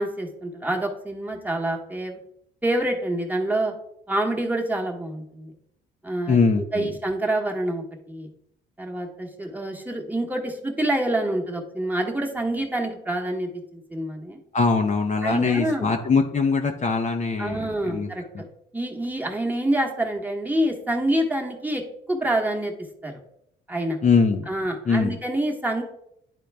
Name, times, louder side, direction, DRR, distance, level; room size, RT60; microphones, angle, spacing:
voice 1, 0.0-2.2 2.6-3.7 4.1-5.5 6.0-6.4 6.7-8.3 8.8-14.4 15.2-15.9 17.4-18.5 18.7-22.7 23.0-23.2 23.7-24.0 24.5-25.8, right 1 dB, 10° right, 1 dB, 1.2 m, -27 dB
voice 2, 6.3-6.9 14.5-18.1 18.3-18.4 24.0-24.5 24.9-25.2, left 4 dB, 35° left, 4 dB, 0.7 m, -22 dB
10.0 x 3.8 x 3.4 m, 0.76 s
cardioid pair, 90°, 20 cm